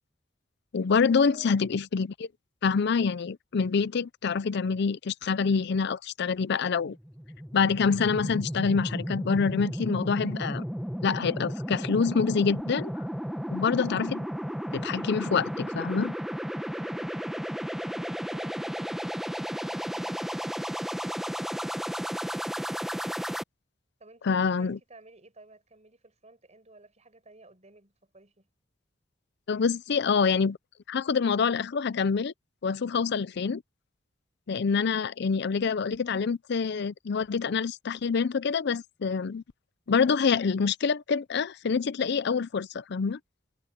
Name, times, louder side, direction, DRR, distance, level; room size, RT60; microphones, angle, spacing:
voice 1, 0.7-2.3 2.6-7.0 7.5-10.6 11.0-13.0 13.5-14.2 14.7-16.1 24.2-24.8 29.5-30.6 30.9-32.3 32.6-33.6 34.5-39.4 39.9-43.2, left 5 dB, 60° left, 0.5 m, -26 dB
voice 2, 1.3-1.7 16.7-20.5 24.0-28.5, right 2 dB, 35° right, 5.9 m, -55 dB
sound 1, 6.9-23.4, equal, ahead, 1.3 m, -34 dB
head